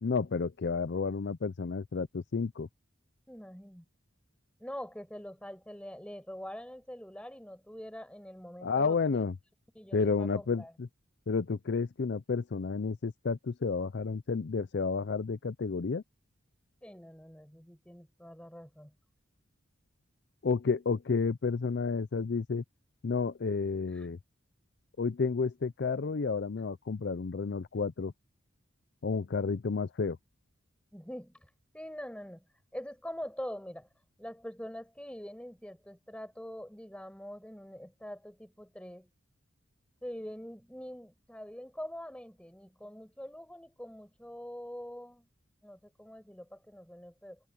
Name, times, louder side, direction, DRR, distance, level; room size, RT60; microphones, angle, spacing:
voice 1, 0.0-2.7 8.6-9.3 9.9-10.9 11.3-16.0 20.4-22.6 23.0-24.2 25.0-28.1 29.0-30.2, left 4 dB, 55° left, 0.5 m, -31 dB
voice 2, 3.3-3.8 4.6-9.2 9.7-10.7 16.8-19.0 30.9-32.4 32.7-33.9 34.2-39.1 40.0-45.3 45.6-47.4, equal, 5° left, 5.5 m, -44 dB
head